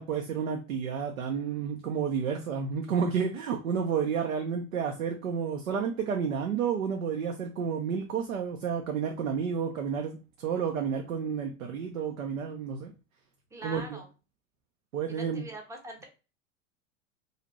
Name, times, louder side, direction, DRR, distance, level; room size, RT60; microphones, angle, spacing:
voice 1, 0.0-12.9 13.6-14.0 14.9-15.4, right 6 dB, 80° right, 3 dB, 0.6 m, -31 dB
voice 2, 13.5-14.1 15.1-16.0, right 2 dB, 5° right, 2 dB, 0.7 m, -42 dB
2.6 x 2.4 x 2.9 m, 0.32 s
hypercardioid pair, 90°, 40 cm